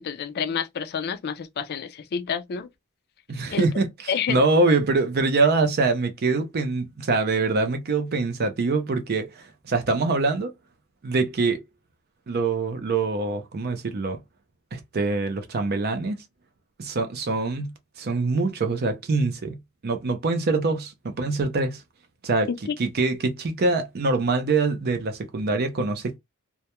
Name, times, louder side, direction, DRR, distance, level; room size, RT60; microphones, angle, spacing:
voice 1, 0.0-2.7 3.5-3.7 4.1-4.4 22.5-22.8, left 6 dB, 45° left, 0.3 m, -29 dB
voice 2, 3.3-10.5 11.0-11.6 12.3-14.2 14.7-16.2 16.8-17.7 18.0-19.6 19.8-21.8 22.2-22.5 22.8-26.2, right 3 dB, 45° right, 0.5 m, -24 dB
2.2 x 2.1 x 2.9 m
head